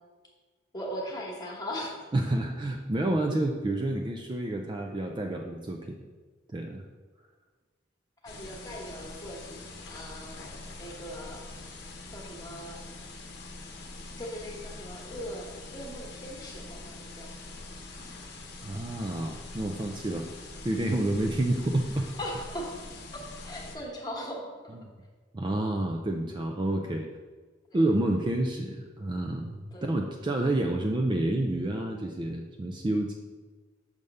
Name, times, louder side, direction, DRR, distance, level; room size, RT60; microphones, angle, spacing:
voice 1, 0.7-1.9 8.2-10.4 10.8-11.5 12.1-12.8 14.1-17.3 22.2-22.8 23.1-24.8 27.7-27.8 29.7-29.9, equal, 20° left, -2 dB, 1.2 m, -39 dB
voice 2, 2.1-6.0 6.5-6.8 18.0-18.1 18.6-20.3 20.6-22.1 24.7-24.9 25.3-27.1 27.7-33.1, right 1 dB, 25° right, 2 dB, 0.4 m, -29 dB
sound 1, 8.3-23.8, left 2 dB, 55° left, 0.9 m, -44 dB
6.5 x 3.5 x 5.3 m, 1.4 s
head